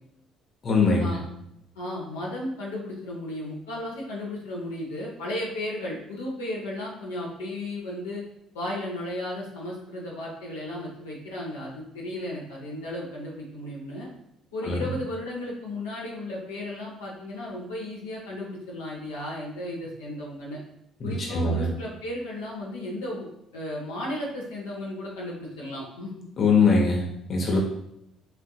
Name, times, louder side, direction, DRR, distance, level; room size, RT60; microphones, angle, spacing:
voice 1, 0.6-1.2 14.7-14.8 21.0-21.7 26.4-27.6, left 4 dB, 50° left, 0 dB, 0.7 m, -22 dB
voice 2, 1.8-8.2 8.5-14.1 14.5-20.6 21.0-26.2, left 1 dB, 85° left, -4 dB, 0.8 m, -34 dB
4.2 x 2.6 x 2.2 m, 0.79 s
hypercardioid pair, 55°, 0 cm